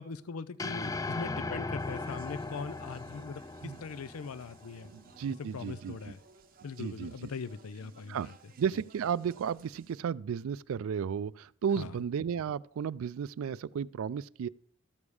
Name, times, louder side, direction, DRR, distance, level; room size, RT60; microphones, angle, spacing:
voice 1, 0.0-4.9 5.4-6.2 6.6-8.8 11.8-12.0, left 5 dB, 90° left, 0.5 m, -41 dB
sound 1, 0.6-5.0, left 3 dB, 15° left, 0.3 m, -38 dB
Speech, 1.8-10.0, right 5 dB, 40° right, 0.7 m, -59 dB
voice 2, 4.9-6.0 6.8-7.3 8.1-8.3 8.6-14.5, right 7 dB, 75° right, 0.3 m, -34 dB
13.5 x 7.0 x 4.8 m
head